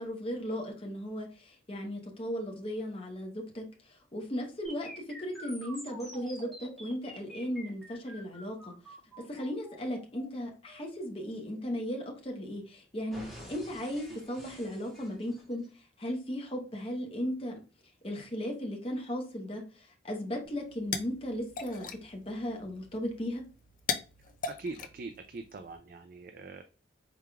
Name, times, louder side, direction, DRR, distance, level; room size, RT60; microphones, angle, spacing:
voice 1, 0.0-8.7 9.3-17.6 18.0-23.4, equal, 30° left, 1 dB, 0.9 m, -36 dB
sound 1, 4.6-12.6 13.1-15.7, equal, ahead, 1.7 m, -49 dB
sound 2, 20.4-25.8, left 6 dB, 45° left, 0.5 m, -40 dB
voice 2, 24.5-26.6, right 3 dB, 45° right, 7 dB, 0.3 m, -42 dB
4.8 x 3.5 x 2.3 m, 0.34 s
head